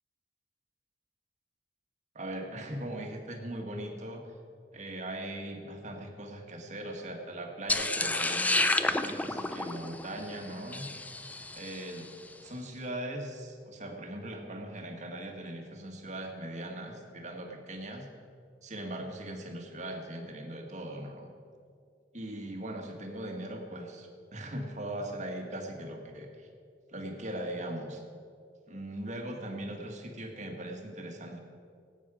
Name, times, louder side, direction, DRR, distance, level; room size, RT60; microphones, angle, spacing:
voice 1, 2.1-4.2 4.7-8.7 9.0-10.9 11.5-12.1 12.4-18.1 18.6-21.3 22.1-26.5 26.9-28.0 28.7-31.4, right 1 dB, 40° right, 2 dB, 1.7 m, -39 dB
sound 1, 7.7-12.0, left 2 dB, 10° left, 0.4 m, -30 dB
17.5 x 9.2 x 5.0 m, 2.3 s
head